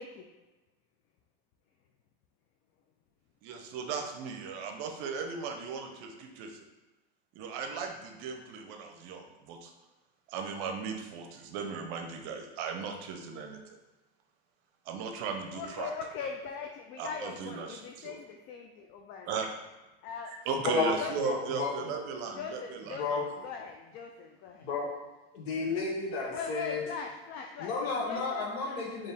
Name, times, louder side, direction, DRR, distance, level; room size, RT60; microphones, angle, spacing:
voice 1, 3.4-6.6 7.4-9.7 10.3-13.6 14.9-15.9 17.0-18.2 19.3-19.5 20.3-23.2, right 5 dB, 55° right, 4 dB, 0.7 m, -37 dB
voice 2, 15.5-19.4 20.0-20.3 20.6-21.3 22.4-24.6 26.3-28.8, left 6 dB, 35° left, 3 dB, 0.4 m, -40 dB
voice 3, 21.2-21.9 23.0-23.2 24.6-25.0 25.3-26.8 27.6-29.1, left 4 dB, 70° left, 0 dB, 1.2 m, -32 dB
4.3 x 2.9 x 3.5 m, 1.1 s
supercardioid pair, 120°, 32 cm